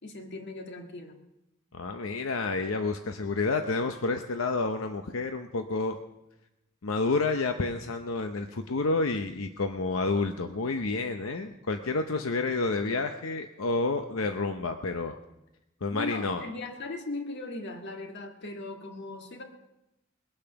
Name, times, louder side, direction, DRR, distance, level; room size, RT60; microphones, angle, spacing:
voice 1, 0.0-1.2 15.9-19.4, left 2 dB, 60° left, 4 dB, 1.8 m, -38 dB
voice 2, 1.7-6.0 6.8-15.2 15.8-16.4, left 3 dB, 85° left, 6 dB, 0.8 m, -29 dB
21.0 x 8.8 x 5.8 m, 0.92 s
head